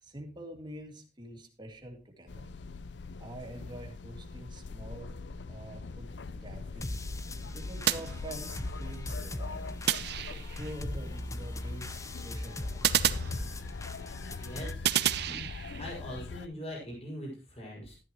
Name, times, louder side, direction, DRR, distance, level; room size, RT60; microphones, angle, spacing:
voice 1, 0.0-2.5 3.2-5.1 5.5-6.1 6.3-7.0 7.5-9.8 10.6-13.1, right 1 dB, 25° right, 3 dB, 2.3 m, -46 dB
sound 1, 2.3-16.5, left 3 dB, 70° left, 0.6 m, -42 dB
sound 2, 6.8-14.7, left 1 dB, 20° left, 0.7 m, -40 dB
sound 3, 7.9-8.8 9.9-10.7 12.8-14.0 14.8-15.9, right 11 dB, 65° right, 0.7 m, -30 dB
voice 2, 14.4-14.9 15.2-15.5 15.8-18.0, equal, 35° left, -3 dB, 5.8 m, -41 dB
13.0 x 11.0 x 3.0 m, 0.35 s
head